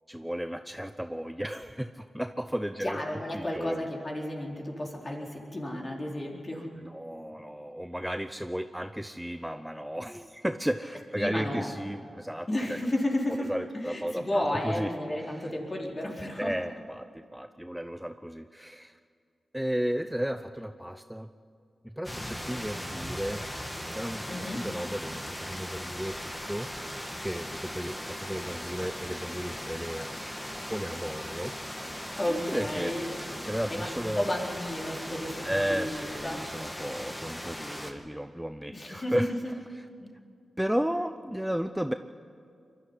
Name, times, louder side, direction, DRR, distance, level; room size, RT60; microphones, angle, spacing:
voice 1, 0.1-3.0 3.3-3.9 6.8-12.8 13.3-14.9 15.2-15.5 16.4-17.1 17.3-19.0 19.5-21.3 21.8-23.4 23.9-26.2 26.5-26.7 27.2-30.1 30.7-31.5 32.3-32.9 33.4-34.3 35.4-39.8 40.6-41.9, equal, 5° right, 9 dB, 0.7 m, -34 dB
voice 2, 2.8-6.7 11.1-11.7 12.5-13.5 13.8-16.5 24.3-24.6 32.2-33.1 33.7-36.4 38.7-39.2 40.0-40.1, left 1 dB, 40° left, -1 dB, 4.3 m, -32 dB
sound 1, 22.0-37.9, equal, 15° left, 2.5 m, -38 dB
22.5 x 12.0 x 9.9 m, 2.3 s
cardioid pair, 45°, 0 cm